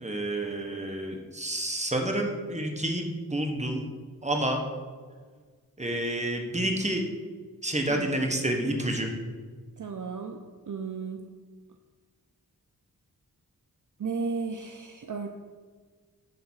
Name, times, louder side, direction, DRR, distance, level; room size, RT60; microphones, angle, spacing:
voice 1, 0.0-3.8 4.2-4.6 5.8-7.0 7.6-9.1, right 1 dB, 20° right, 2 dB, 1.3 m, -29 dB
voice 2, 9.8-10.4 10.7-11.3 14.0-15.3, right 4 dB, 55° right, 4 dB, 0.6 m, -34 dB
10.5 x 3.8 x 5.6 m, 1.5 s
wide cardioid pair, 55°, 38 cm